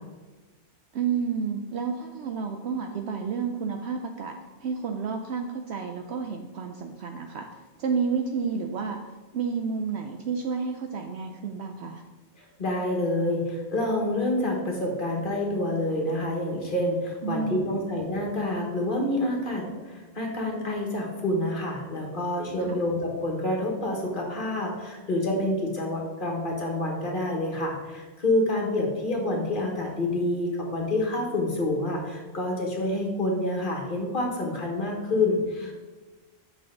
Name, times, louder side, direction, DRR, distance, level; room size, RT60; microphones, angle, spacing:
voice 1, 0.9-4.3 4.6-7.5 7.8-9.0 9.3-12.0 17.2-17.9 22.7-22.8, right 5 dB, 65° right, 4 dB, 0.8 m, -30 dB
voice 2, 12.6-35.7, left 1 dB, 45° left, 0 dB, 1.6 m, -28 dB
8.2 x 5.8 x 3.8 m, 1.3 s
omnidirectional pair, 1.3 m